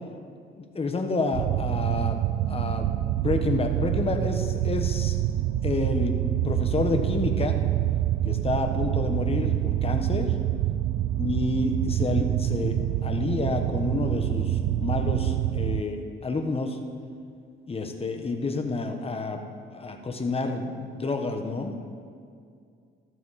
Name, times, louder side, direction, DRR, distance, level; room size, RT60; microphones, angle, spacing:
voice 1, 0.6-2.9 3.2-5.2 5.6-6.2 6.4-7.6 8.2-10.3 11.2-16.8 17.7-19.4 19.7-21.8, left 3 dB, 30° left, 5 dB, 1.3 m, -29 dB
sound 1, 1.3-15.8, right 13 dB, 85° right, 0.4 m, -26 dB
14.0 x 12.0 x 4.3 m, 2.3 s
cardioid pair, 90°, 20 cm